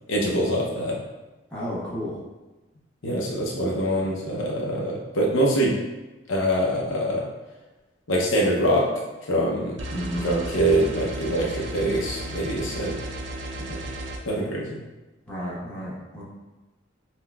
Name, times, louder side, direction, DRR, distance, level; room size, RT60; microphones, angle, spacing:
voice 1, 0.1-1.0 3.0-5.7 6.3-7.3 8.1-8.9 9.3-9.8 10.2-12.9 13.6-13.8 14.3-14.7, right 1 dB, 90° left, -2 dB, 0.7 m, -24 dB
voice 2, 1.5-2.2 9.9-10.3 15.3-16.2, equal, 5° left, -8 dB, 1.0 m, -32 dB
sound 1, 9.8-14.2, right 1 dB, 65° right, 0.5 m, -34 dB
5.6 x 2.2 x 2.2 m, 1.1 s
head